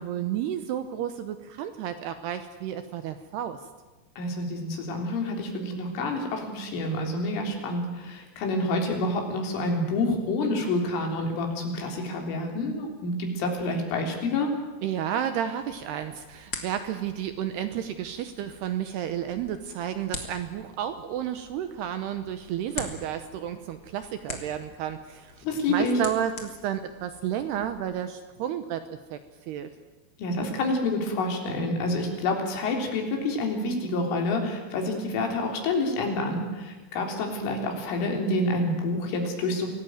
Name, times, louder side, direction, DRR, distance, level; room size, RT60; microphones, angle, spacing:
voice 1, 0.0-3.6 14.8-28.8 29.1-29.2 29.5-29.7, right 10 dB, 75° right, 9 dB, 2.6 m, -32 dB
voice 2, 4.2-14.5 25.4-26.0 30.2-39.7, left 2 dB, 80° left, 2 dB, 6.1 m, -28 dB
sound 1, 15.6-27.8, left 3 dB, 35° left, 2.1 m, -44 dB
25.5 x 17.5 x 9.3 m, 1.2 s
omnidirectional pair, 5.6 m